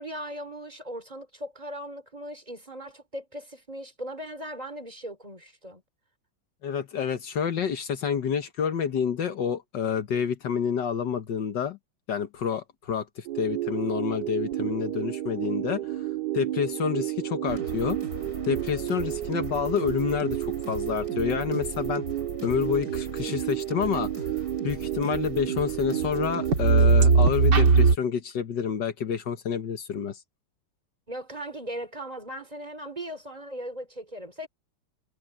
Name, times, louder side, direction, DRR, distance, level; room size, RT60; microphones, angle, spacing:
voice 1, 0.0-5.8 31.1-34.5, equal, 20° right, 2.9 m, -38 dB
voice 2, 6.6-11.8 12.1-15.8 16.3-18.0 18.4-22.1 22.4-24.2 24.6-30.2, left 7 dB, 70° left, 1.8 m, -28 dB
sound 1, 13.3-28.0, right 6 dB, 60° right, 2.5 m, -26 dB
sound 2, 17.5-27.9, right 2 dB, 45° right, 4.3 m, -40 dB
omnidirectional pair, 2.1 m